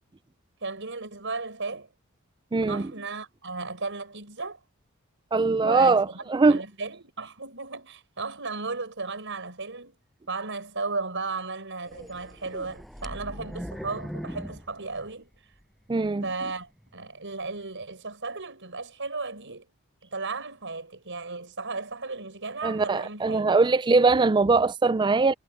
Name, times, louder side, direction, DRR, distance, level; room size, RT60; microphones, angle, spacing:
voice 1, 0.6-1.9 2.7-4.6 5.6-10.0 10.3-15.3 16.2-19.7 20.1-23.5, right 3 dB, 60° right, 6.6 m, -35 dB
voice 2, 2.5-2.9 5.3-6.6 15.9-16.3 22.6-25.3, right 3 dB, 20° right, 0.4 m, -21 dB
sound 1, 11.9-15.6 16.1-16.2 16.8-16.9, equal, ahead, 7.1 m, -40 dB
head